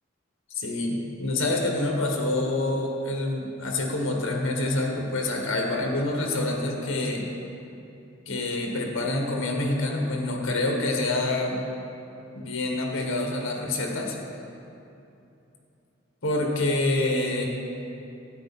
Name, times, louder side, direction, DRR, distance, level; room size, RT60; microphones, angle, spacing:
voice 1, 0.5-7.2 8.3-11.6 12.3-14.1 16.2-17.5, left 2 dB, 75° left, 1 dB, 1.5 m, -27 dB
12.5 x 9.2 x 4.3 m, 2.7 s
head